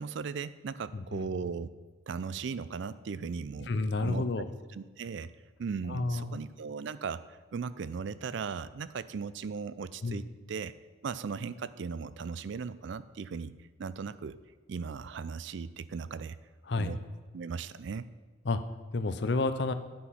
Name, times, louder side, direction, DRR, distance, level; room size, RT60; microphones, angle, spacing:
voice 1, 0.0-1.7 2.1-3.7 4.0-4.2 4.7-5.3 5.6-10.7 11.0-13.5 13.8-14.4 14.7-16.4 16.7-17.0 17.3-18.1, right 5 dB, 60° right, 16 dB, 0.4 m, -37 dB
voice 2, 0.9-1.3 3.6-4.5 5.9-6.4 10.0-10.2 16.7-17.0 18.4-18.6 18.9-19.7, left 3 dB, 55° left, 11 dB, 0.5 m, -30 dB
8.6 x 6.1 x 5.5 m, 1.4 s
head